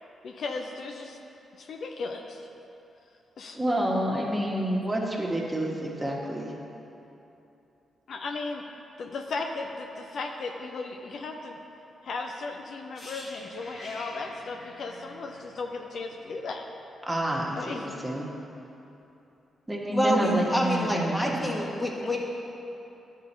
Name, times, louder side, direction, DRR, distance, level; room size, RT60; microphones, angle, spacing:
voice 1, 0.2-1.2 1.6-2.5 3.4-3.6 8.1-8.6 9.0-11.6 12.0-16.7 17.5-17.9, left 3 dB, 65° left, 3 dB, 0.5 m, -36 dB
voice 2, 3.5-6.5 17.1-18.2 19.7-21.4, right 1 dB, 15° right, -2 dB, 1.4 m, -28 dB
sound 1, 12.9-16.8 17.1-17.3, left 1 dB, 50° left, 1.3 m, -46 dB
voice 3, 19.9-22.2, equal, 20° left, -3 dB, 1.5 m, -27 dB
10.5 x 3.9 x 4.4 m, 2.9 s
hypercardioid pair, 45°, 0 cm